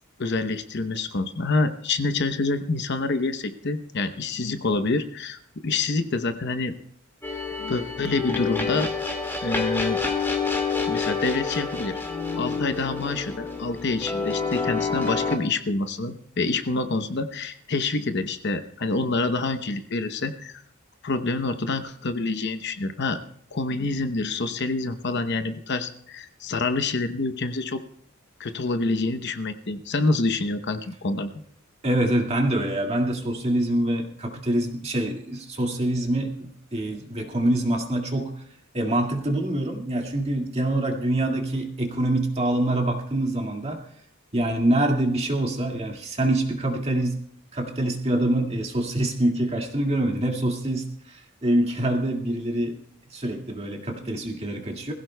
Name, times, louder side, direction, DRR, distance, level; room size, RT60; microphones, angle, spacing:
voice 1, 0.2-6.7 7.6-8.9 9.4-10.0 10.9-12.0 12.4-20.6 21.0-23.2 23.5-27.8 28.4-31.3, left 3 dB, 55° left, 8 dB, 0.9 m, -27 dB
sound 1, 7.2-15.4, left 5 dB, 10° left, 2.0 m, -28 dB
voice 2, 31.8-38.4 38.7-43.8 44.3-47.2 47.5-52.8 53.1-54.9, right 1 dB, 30° right, 1 dB, 2.1 m, -25 dB
21.5 x 15.5 x 2.3 m, 0.65 s
head